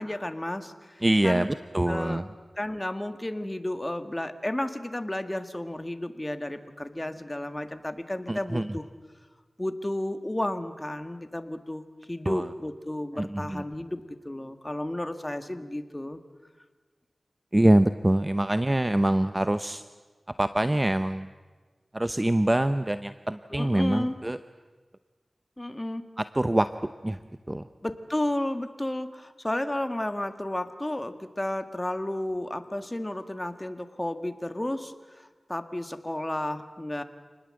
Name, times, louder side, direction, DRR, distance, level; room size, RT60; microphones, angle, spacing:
voice 1, 0.0-1.5 1.9-2.2 2.6-8.8 9.6-16.2 23.5-24.2 25.6-26.0 27.8-37.0, left 1 dB, 20° left, 9 dB, 1.8 m, -32 dB
voice 2, 1.0-2.2 8.3-8.7 12.3-12.4 13.2-13.6 17.5-19.8 20.4-21.3 21.9-24.4 26.3-26.7 27.0-27.2 27.5-27.6, right 1 dB, 25° right, 11 dB, 0.7 m, -24 dB
28.0 x 20.0 x 7.7 m, 1.4 s
cardioid pair, 50°, 0 cm